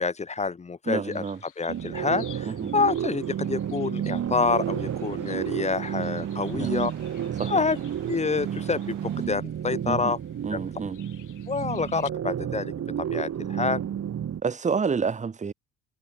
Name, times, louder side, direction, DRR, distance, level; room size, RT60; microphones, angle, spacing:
voice 1, 0.0-1.2 1.6-6.9 7.5-7.8 8.1-10.2 10.5-10.6 11.5-12.7 13.0-13.8, left 4 dB, 20° left, 0.7 m, -27 dB
voice 2, 0.9-1.4 2.4-2.7 6.5-6.8 7.4-7.6 9.9-10.1 10.4-11.0 14.4-15.5, right 5 dB, 20° right, 0.8 m, -29 dB
sound 1, 1.1-12.1, left 11 dB, 55° left, 5.5 m, -53 dB
sound 2, 1.7-14.4, right 9 dB, 40° right, 1.5 m, -31 dB
sound 3, 4.5-9.3, right 25 dB, 80° right, 7.5 m, -48 dB
hypercardioid pair, 60°, 37 cm